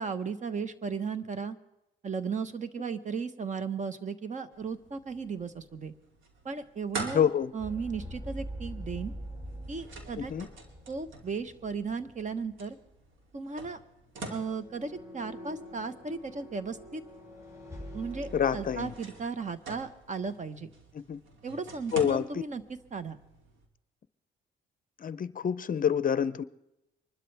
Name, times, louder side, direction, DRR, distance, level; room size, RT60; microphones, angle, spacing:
voice 1, 0.0-1.6 2.0-5.9 6.4-9.1 9.7-10.3 10.9-12.8 13.3-13.8 14.3-17.0 17.9-20.7 21.4-22.6 22.9-23.2, right 5 dB, 40° right, 12 dB, 1.2 m, -35 dB
sound 1, 4.5-23.7, right 3 dB, 75° right, 2.9 m, -47 dB
voice 2, 7.1-7.5 10.2-10.5 18.3-18.9 20.9-21.2 21.9-22.2 25.0-26.4, left 8 dB, 45° left, 16 dB, 0.6 m, -27 dB
sound 2, 7.6-12.4 12.7-12.9 14.4-19.0, equal, 15° right, 6.6 m, -44 dB
24.5 x 12.5 x 3.4 m, 0.88 s
cardioid pair, 90°, 20 cm